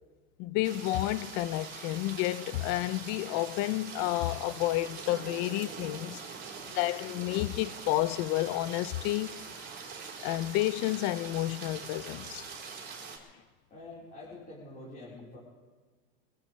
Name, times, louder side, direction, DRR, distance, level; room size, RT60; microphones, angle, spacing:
voice 1, 0.4-6.2 6.8-9.4 10.2-12.5, left 16 dB, 55° left, 0.6 m, -30 dB
sound 1, 0.6-13.2, right 5 dB, 30° right, 3.5 m, -43 dB
voice 2, 13.7-15.4, left 2 dB, 30° left, 4.4 m, -46 dB
23.0 x 16.5 x 3.3 m
supercardioid pair, 135°, 30 cm